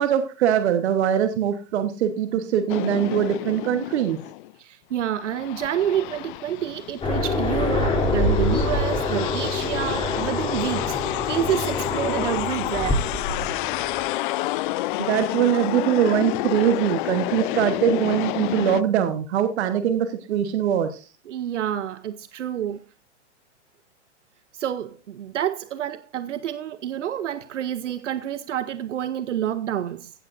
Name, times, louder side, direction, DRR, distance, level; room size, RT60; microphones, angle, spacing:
voice 1, 0.0-4.2 15.0-21.1, right 9 dB, 65° right, 1.2 m, -22 dB
sound 1, 2.7-4.5 5.0-18.8, left 18 dB, 45° left, 0.5 m, -30 dB
voice 2, 4.6-13.1 21.3-22.8 24.5-30.1, right 10 dB, 85° right, 0.8 m, -28 dB
Aircraft, 7.0-14.1, left 2 dB, 15° left, 3.0 m, -25 dB
16.0 x 8.6 x 2.5 m
hypercardioid pair, 120°, 35 cm